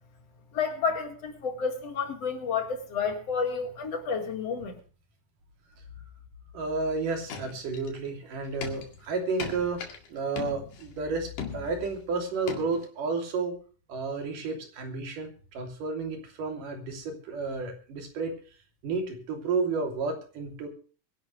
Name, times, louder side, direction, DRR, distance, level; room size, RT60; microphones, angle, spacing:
voice 1, 0.5-4.8, left 5 dB, 55° left, 3.0 m, -30 dB
voice 2, 6.5-9.8 10.1-13.6 13.9-18.3 18.8-20.7, right 4 dB, 85° right, 4.6 m, -31 dB
sound 1, 7.3-8.1 8.4-10.1 10.4-11.0 11.4-12.0 12.5-12.8, left 5 dB, 80° left, 3.6 m, -39 dB
23.5 x 11.0 x 3.2 m
omnidirectional pair, 3.6 m